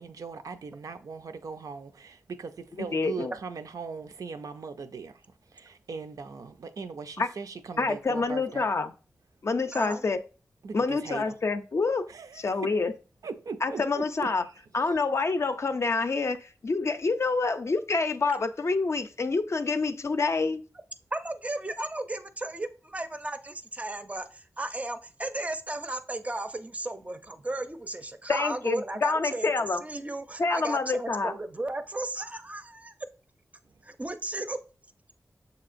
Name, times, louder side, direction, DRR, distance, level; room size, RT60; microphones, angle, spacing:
voice 1, 0.0-5.2 5.5-8.7 10.6-11.3 12.1-12.7 13.2-14.6, right 5 dB, 85° right, 0.4 m, -39 dB
voice 2, 2.8-3.3 7.2-7.3 7.8-8.9 9.4-10.2 10.7-12.1 12.4-12.9 13.6-14.4 14.7-20.6 28.3-29.8 30.4-31.3, left 4 dB, 50° left, 0.4 m, -27 dB
voice 3, 9.7-10.1 21.1-29.5 29.8-32.9 33.8-34.6, right 2 dB, 25° right, 0.4 m, -35 dB
6.7 x 2.8 x 2.5 m
wide cardioid pair, 90°, 6 cm